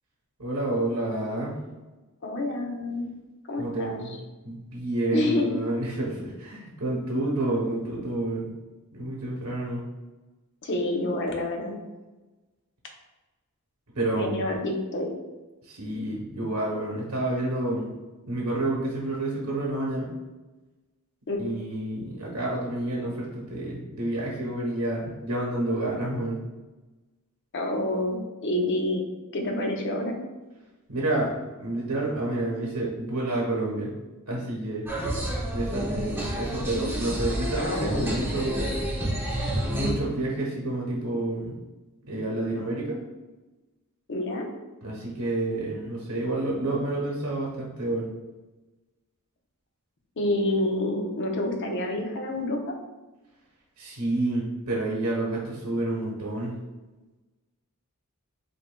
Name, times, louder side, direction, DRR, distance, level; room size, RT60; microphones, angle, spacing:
voice 1, 0.4-1.5 3.6-4.2 4.4-8.5 8.9-9.8 13.9-14.4 15.6-17.9 18.3-20.1 21.4-26.4 30.9-31.3 31.6-33.9 34.3-34.9 35.5-38.8 39.7-41.5 42.1-43.0 44.8-48.1 53.8-56.5, right 2 dB, 90° right, -4 dB, 1.0 m, -29 dB
voice 2, 2.2-3.1 3.5-4.0 5.1-5.5 10.6-11.8 14.1-15.1 21.3-21.4 27.5-29.0 29.3-30.2 37.6-38.2 44.1-44.5 50.2-52.6, left 1 dB, 55° left, 2 dB, 0.7 m, -28 dB
sound 1, 34.9-39.9, equal, 10° right, 1.0 m, -29 dB
7.8 x 2.7 x 2.2 m, 1.2 s
head